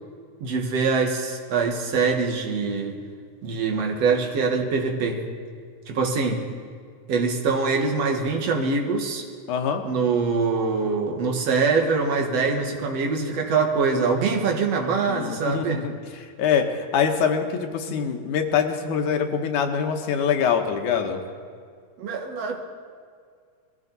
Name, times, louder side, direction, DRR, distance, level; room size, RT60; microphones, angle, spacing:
voice 1, 0.4-3.0 3.4-5.2 5.9-6.5 7.1-9.3 9.8-15.8 22.0-22.6, right 4 dB, 60° right, 2 dB, 2.5 m, -24 dB
voice 2, 9.5-9.8 15.1-15.9 16.4-17.5 17.7-21.2, left 7 dB, 80° left, 4 dB, 2.6 m, -24 dB
22.0 x 14.5 x 4.1 m, 2.1 s
omnidirectional pair, 3.5 m